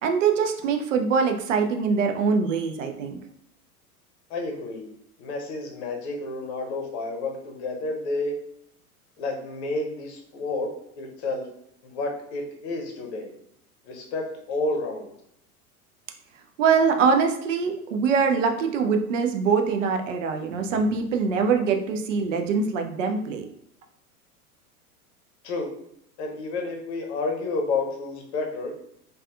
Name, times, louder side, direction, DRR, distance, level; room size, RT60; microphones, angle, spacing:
voice 1, 0.0-3.2 16.6-23.5, right 5 dB, 55° right, 5 dB, 0.5 m, -23 dB
voice 2, 4.3-4.9 5.2-8.3 9.2-11.5 11.8-13.3 13.8-15.1 25.4-25.7 26.2-28.9, left 3 dB, 45° left, 2 dB, 0.7 m, -30 dB
3.3 x 2.3 x 2.4 m, 0.75 s
figure-of-eight pair, 85°, 45 cm